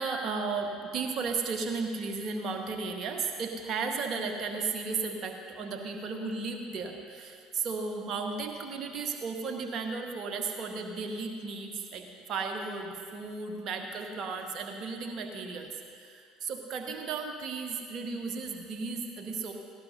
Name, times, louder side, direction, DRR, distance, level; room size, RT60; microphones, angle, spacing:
voice 1, 0.0-15.7 16.0-19.5, right 4 dB, 45° right, 3 dB, 1.5 m, -34 dB
18.0 x 17.0 x 2.8 m, 2.2 s
figure-of-eight pair, 60°, 0 cm